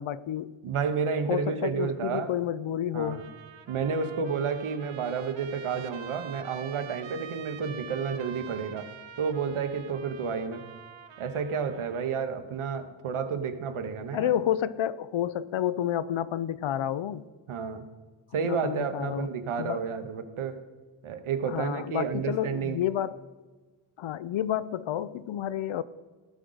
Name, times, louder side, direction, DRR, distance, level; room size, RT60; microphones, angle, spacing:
voice 1, 0.0-0.5 1.3-3.3 14.1-17.3 18.4-19.3 19.6-19.8 21.4-23.2 24.0-25.8, left 11 dB, 70° left, 17 dB, 0.5 m, -30 dB
voice 2, 0.6-2.3 2.9-3.2 3.7-8.9 9.2-10.6 11.2-14.3 17.5-17.8 18.3-20.6 21.0-22.8, right 6 dB, 85° right, 8 dB, 1.1 m, -31 dB
Trumpet, 3.1-12.2, right 8 dB, 65° right, 0.9 m, -46 dB
17.5 x 6.3 x 4.0 m, 1.3 s
wide cardioid pair, 140°, 49 cm